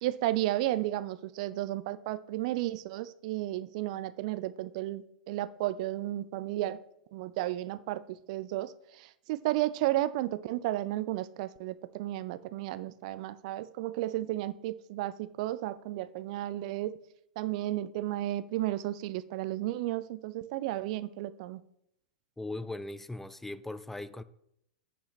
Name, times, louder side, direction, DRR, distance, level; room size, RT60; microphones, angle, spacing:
voice 1, 0.0-6.8 7.1-16.9 17.4-21.6, right 15 dB, 55° right, 0.5 m, -33 dB
voice 2, 22.4-24.2, left 2 dB, 5° left, 0.3 m, -39 dB
8.4 x 5.6 x 4.2 m
hypercardioid pair, 105°, 5 cm